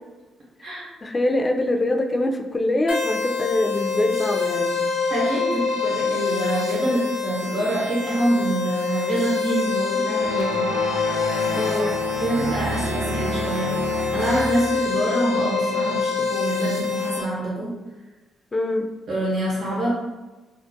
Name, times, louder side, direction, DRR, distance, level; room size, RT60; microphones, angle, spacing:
voice 1, 1.0-4.9 11.5-12.0 18.5-18.9, left 1 dB, 30° left, 3 dB, 0.3 m, -24 dB
sound 1, 2.9-17.2, left 5 dB, 90° left, 0.9 m, -26 dB
voice 2, 5.1-10.7 12.2-17.8 19.1-19.9, right 1 dB, 65° right, -6 dB, 0.8 m, -26 dB
sound 2, 10.2-14.8, right 1 dB, 85° right, 0.3 m, -29 dB
2.3 x 2.1 x 2.6 m, 1.2 s
supercardioid pair, 55°, 0 cm